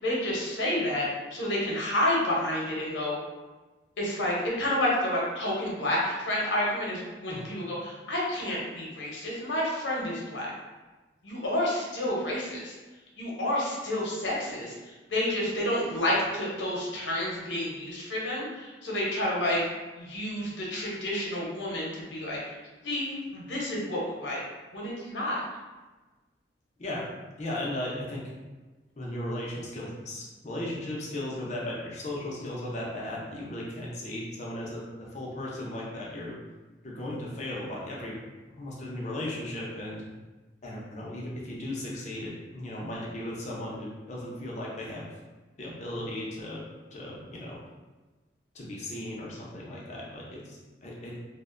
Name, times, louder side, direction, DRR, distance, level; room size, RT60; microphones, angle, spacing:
voice 1, 0.0-3.2 4.0-10.5 11.2-12.7 13.2-19.7 20.0-22.4 22.8-24.4 24.7-25.4, left 1 dB, 80° left, -4 dB, 0.7 m, -30 dB
voice 2, 27.4-28.3 29.0-36.4 36.8-38.2 38.6-40.0 40.6-45.1 45.6-46.7 46.9-47.6 48.5-51.2, left 1 dB, 40° left, -4 dB, 0.5 m, -36 dB
2.5 x 2.1 x 2.4 m, 1.2 s
head